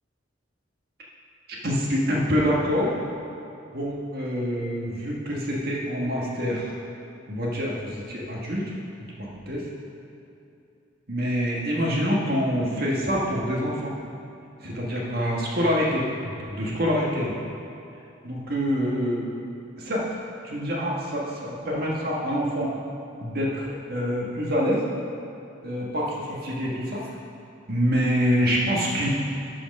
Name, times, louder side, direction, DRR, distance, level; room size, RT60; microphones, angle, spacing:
voice 1, 1.5-2.9 3.7-6.7 7.3-8.7 9.2-9.7 11.1-13.9 14.6-17.4 18.2-19.4 19.8-20.1 20.4-22.7 23.2-24.8 25.6-27.0 27.7-29.1, equal, 50° right, -3 dB, 1.6 m, -26 dB
12.5 x 4.9 x 5.3 m, 2.7 s
head